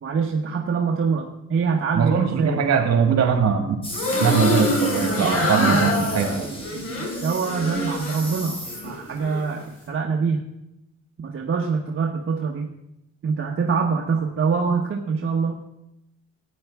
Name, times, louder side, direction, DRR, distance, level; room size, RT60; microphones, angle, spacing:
voice 1, 0.0-2.6 5.2-10.5 11.2-12.7 13.2-15.6, right 5 dB, 45° right, 1 dB, 1.1 m, -25 dB
voice 2, 1.9-3.8 4.2-6.4, right 6 dB, 60° right, 5 dB, 2.0 m, -21 dB
sound 1, 3.8-9.2, equal, 15° left, 2.9 m, -36 dB
sound 2, 3.9-8.3 8.7-9.4, left 2 dB, 50° left, 3.2 m, -25 dB
14.0 x 9.1 x 3.6 m, 0.86 s
cardioid pair, 90°, 30 cm